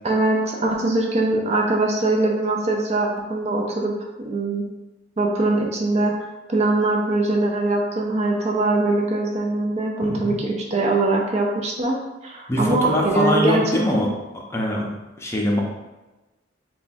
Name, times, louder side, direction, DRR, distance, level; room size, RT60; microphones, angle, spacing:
voice 1, 0.0-3.9 4.2-4.7 5.2-6.1 6.5-12.0 12.2-14.1, right 2 dB, 35° right, 0 dB, 0.5 m, -22 dB
voice 2, 10.0-10.4 12.5-14.1 14.5-14.9 15.2-15.6, equal, 15° left, -2 dB, 0.6 m, -22 dB
3.4 x 2.3 x 4.1 m, 1.1 s
head